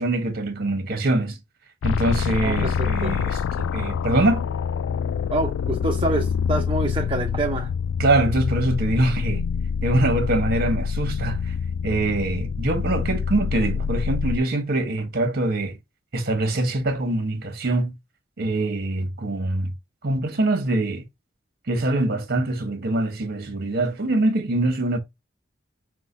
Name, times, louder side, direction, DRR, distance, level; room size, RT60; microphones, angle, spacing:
voice 1, 0.0-1.4 1.8-4.5 8.0-9.4 9.8-11.5 11.8-15.8 16.1-17.9 18.4-19.7 20.0-21.0 21.7-25.0, right 2 dB, 55° right, 1.3 m, -24 dB
sound 1, 1.8-14.4, left 6 dB, 85° left, 0.3 m, -26 dB
voice 2, 2.4-3.1 5.3-7.7, right 2 dB, 25° right, 0.7 m, -26 dB
5.9 x 2.2 x 4.0 m
head